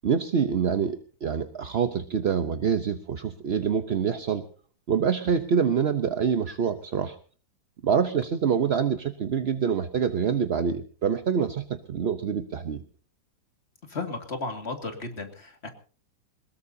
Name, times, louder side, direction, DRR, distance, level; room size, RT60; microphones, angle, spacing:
voice 1, 0.0-4.4 4.9-7.2 7.8-12.8, right 7 dB, 50° right, 9 dB, 0.8 m, -26 dB
voice 2, 13.9-15.7, left 3 dB, 35° left, 5 dB, 2.4 m, -34 dB
22.0 x 20.5 x 2.7 m, 0.40 s
omnidirectional pair, 2.0 m